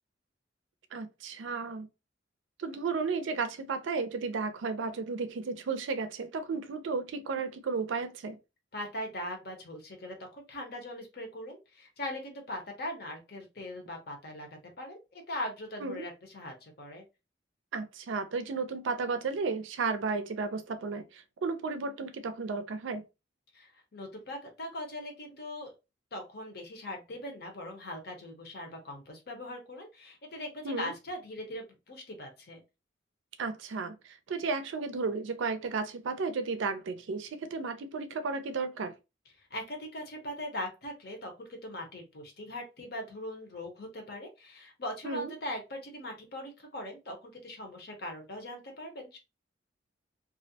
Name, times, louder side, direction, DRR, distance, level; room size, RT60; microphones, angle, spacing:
voice 1, 0.9-1.9 2.6-8.4 15.8-16.0 17.7-23.0 30.6-30.9 33.4-38.9 45.0-45.3, right 4 dB, 75° right, 0.4 m, -33 dB
voice 2, 8.7-14.5 14.8-17.0 23.5-25.7 26.1-32.6 39.4-49.2, left 1 dB, 50° left, 0.7 m, -40 dB
2.4 x 2.0 x 2.7 m
head